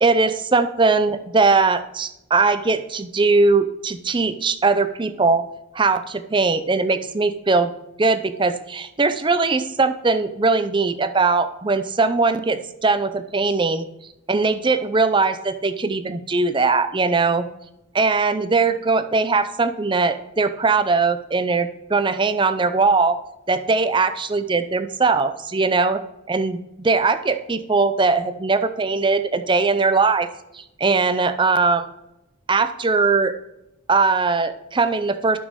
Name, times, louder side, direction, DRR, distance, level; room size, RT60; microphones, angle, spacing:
voice 1, 0.0-5.4 5.7-7.7 8.0-13.9 14.3-17.5 17.9-23.2 23.5-26.0 26.3-30.3 30.5-31.8 32.5-33.3 33.9-35.4, right 4 dB, 25° right, 11 dB, 0.5 m, -20 dB
9.2 x 6.3 x 5.2 m, 0.88 s
head